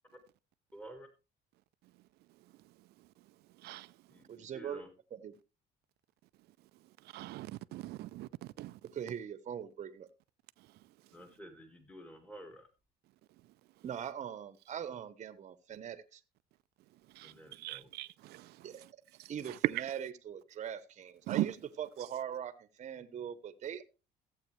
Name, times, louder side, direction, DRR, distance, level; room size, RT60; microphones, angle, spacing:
voice 1, 0.7-1.1 4.1-4.9 11.1-12.7 17.2-17.9, right 1 dB, 5° left, 1.7 m, -51 dB
voice 2, 2.6-3.1 3.6-4.0 7.0-8.8 10.6-11.1 17.1-18.9 19.2-19.9 21.3-21.5, right 17 dB, 75° right, 0.4 m, -39 dB
voice 3, 4.3-4.8 5.1-5.3 8.9-10.1 13.8-16.2 18.6-18.8 19.3-23.8, right 9 dB, 45° right, 0.9 m, -41 dB
14.5 x 7.8 x 3.2 m
cardioid pair, 110°, 17 cm